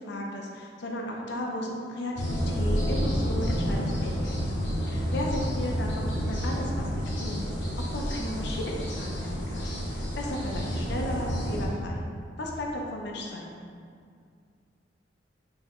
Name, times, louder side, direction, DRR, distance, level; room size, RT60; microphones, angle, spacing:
voice 1, 0.0-4.6 4.9-7.5 7.8-12.0 12.4-13.6, left 1 dB, 65° left, -1 dB, 0.6 m, -35 dB
sound 1, 2.2-11.6, equal, 80° left, 1.0 m, -29 dB
3.9 x 3.5 x 3.0 m, 2.2 s
head